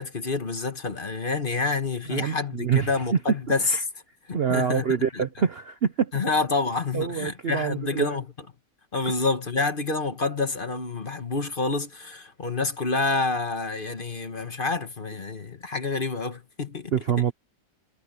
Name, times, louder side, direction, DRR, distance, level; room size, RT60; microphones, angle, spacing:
voice 1, 0.0-3.8 4.3-5.2 6.1-8.2 8.9-16.9, left 3 dB, 30° left, 1.3 m, -28 dB
voice 2, 2.1-3.0 3.6-3.8 4.3-6.1 6.9-8.2 16.9-17.3, right 8 dB, 80° right, 0.5 m, -26 dB
omnidirectional pair, 2.1 m